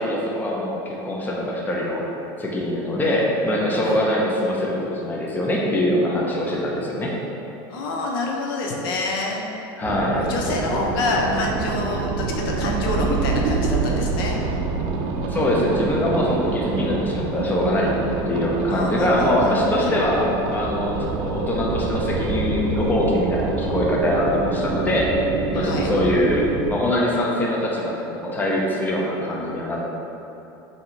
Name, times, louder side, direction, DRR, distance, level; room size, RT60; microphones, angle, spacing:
voice 1, 0.0-2.0 2.4-7.1 9.8-10.2 15.3-17.9 18.3-20.3 20.5-25.1 25.5-29.8, left 1 dB, 15° left, -3 dB, 0.7 m, -23 dB
voice 2, 7.7-9.4 10.2-14.4 18.7-19.5 19.8-19.9 25.5-25.9, left 2 dB, 80° left, -1 dB, 0.6 m, -27 dB
sound 1, 9.8-26.7, right 4 dB, 55° right, 0.4 m, -26 dB
3.7 x 2.8 x 4.4 m, 2.9 s
supercardioid pair, 125°, 11 cm